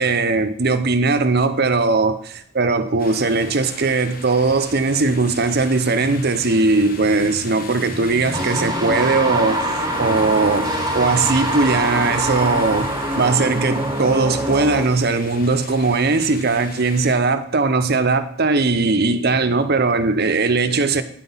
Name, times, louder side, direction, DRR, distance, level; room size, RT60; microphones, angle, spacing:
voice 1, 0.0-12.9 13.2-21.0, right 3 dB, 50° right, 0.7 m, -19 dB
sound 1, 3.0-17.1, left 3 dB, 40° left, 1.1 m, -36 dB
sound 2, 8.3-14.9, right 1 dB, 20° right, 1.2 m, -24 dB
9.8 x 6.0 x 5.6 m
head